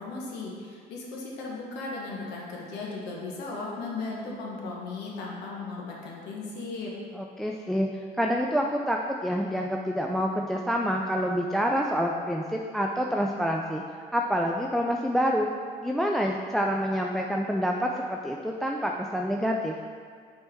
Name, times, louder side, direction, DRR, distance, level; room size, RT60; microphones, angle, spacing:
voice 1, 0.0-6.9, left 3 dB, 85° left, -3 dB, 1.3 m, -36 dB
voice 2, 7.2-7.9 8.2-13.8 14.1-15.5 15.8-19.8, equal, ahead, 1 dB, 0.3 m, -27 dB
6.7 x 4.4 x 3.6 m, 2.1 s
cardioid pair, 110°, 17 cm